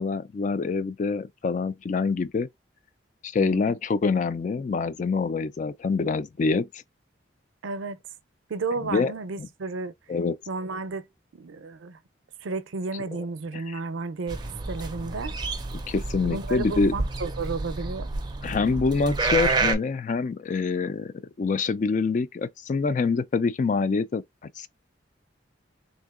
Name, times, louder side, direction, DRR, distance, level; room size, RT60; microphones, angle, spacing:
voice 1, 0.0-2.5 3.2-6.8 8.8-9.1 10.1-10.4 13.1-13.3 13.5-13.8 15.9-17.0 18.4-24.2 24.6-24.7, left 4 dB, 40° left, 0.3 m, -26 dB
voice 2, 7.6-8.0 8.5-9.9 10.5-11.1 11.3-12.0 12.4-15.4 16.2-18.1, right 3 dB, 85° right, 0.5 m, -32 dB
sound 1, 14.3-19.8, right 3 dB, 20° right, 0.4 m, -29 dB
3.6 x 2.7 x 2.3 m
head